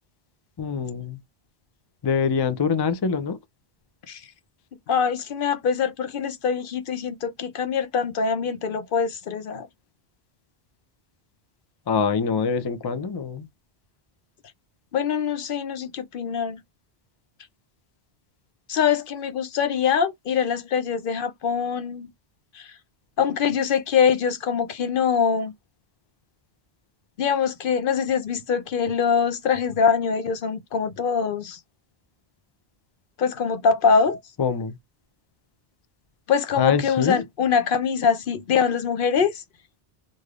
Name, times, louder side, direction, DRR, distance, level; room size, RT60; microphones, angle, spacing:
voice 1, 0.6-1.2 2.0-3.4 11.9-13.5 34.4-34.7 36.6-37.2, left 6 dB, 45° left, 0.3 m, -24 dB
voice 2, 4.9-9.7 14.9-16.6 18.7-22.1 22.5-22.7 23.2-25.5 27.2-31.6 33.2-34.2 36.3-39.3, left 6 dB, 60° left, 0.7 m, -23 dB
3.3 x 2.7 x 2.3 m
omnidirectional pair, 1.0 m